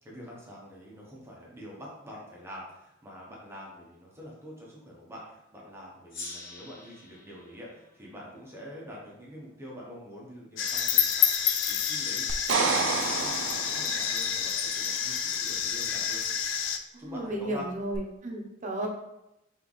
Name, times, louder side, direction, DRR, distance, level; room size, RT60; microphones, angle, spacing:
voice 1, 0.0-11.3 11.7-16.2 17.0-17.7, equal, 15° right, -4 dB, 1.0 m, -46 dB
Gong, 6.1-9.3, left 2 dB, 50° left, 1.1 m, -46 dB
sound 1, 10.6-16.8, left 8 dB, 90° left, 0.4 m, -28 dB
sound 2, 12.3-14.2 17.9-18.0, right 5 dB, 85° right, 0.4 m, -29 dB
voice 2, 16.9-18.9, right 1 dB, 40° right, 0 dB, 0.8 m, -34 dB
3.5 x 3.3 x 4.0 m, 0.86 s
head